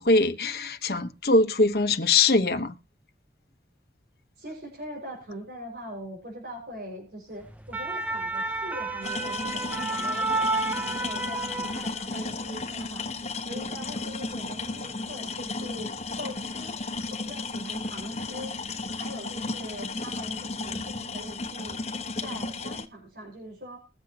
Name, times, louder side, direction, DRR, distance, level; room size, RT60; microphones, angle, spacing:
voice 1, 0.0-2.8, left 3 dB, 60° left, 1.2 m, -22 dB
voice 2, 4.4-13.0 13.4-15.9 16.2-16.7 17.1-18.6 19.0-21.8 22.2-23.8, equal, 65° right, 5.5 m, -41 dB
sound 1, 7.5-12.2 12.6-12.8, right 2 dB, 10° right, 0.7 m, -30 dB
sound 2, 9.0-22.9, left 3 dB, 40° left, 1.3 m, -34 dB
21.5 x 7.8 x 2.9 m
head